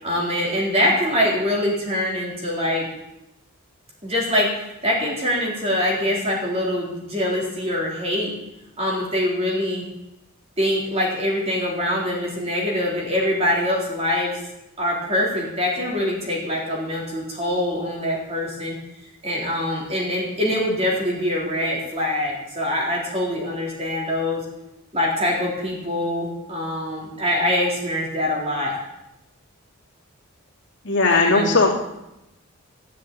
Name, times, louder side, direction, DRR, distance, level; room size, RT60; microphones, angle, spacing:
voice 1, 0.0-2.9 4.0-4.5 4.8-8.3 8.8-9.8 10.6-14.4 14.8-18.8 19.2-24.4 24.9-28.8 31.2-31.6, left 1 dB, 30° right, -3 dB, 4.0 m, -24 dB
voice 2, 30.8-31.7, left 3 dB, 55° left, -2 dB, 3.0 m, -17 dB
14.0 x 7.6 x 8.6 m, 0.91 s
head